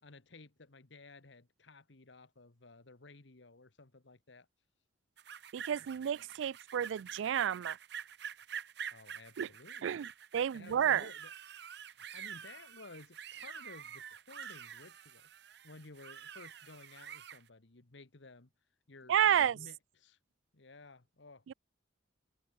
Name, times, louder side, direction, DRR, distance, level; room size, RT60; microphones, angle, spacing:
voice 1, 0.0-4.5 5.8-5.9 8.9-10.0 10.5-11.3 11.9-15.3 15.6-18.5 18.9-20.2 20.5-21.5, left 3 dB, 65° left, 1.4 m, -55 dB
sound 1, 5.2-17.4, right 8 dB, 60° right, 0.9 m, -47 dB
voice 2, 5.5-7.8 9.4-9.5 9.8-10.1 10.3-11.1 19.1-19.6 21.5-21.6, right 9 dB, 75° right, 0.3 m, -30 dB
head